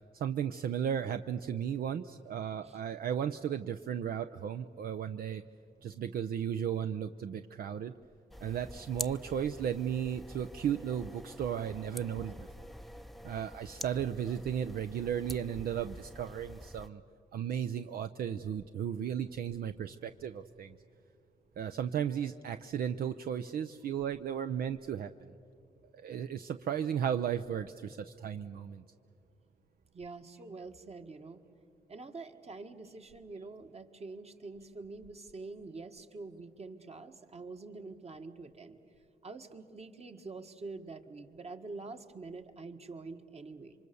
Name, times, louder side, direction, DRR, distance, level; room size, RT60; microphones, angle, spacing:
voice 1, 0.1-5.4 5.8-7.9 8.4-12.7 13.2-17.0 17.3-20.8 21.6-25.3 25.9-28.8, right 9 dB, 70° right, 9 dB, 0.6 m, -35 dB
sound 1, 8.3-16.9, equal, ahead, 0.7 m, -46 dB
voice 2, 29.9-31.4 31.9-38.8 39.2-43.7, right 3 dB, 40° right, 6 dB, 1.7 m, -46 dB
27.0 x 24.5 x 7.0 m, 2.4 s
cardioid pair, 60°, 16 cm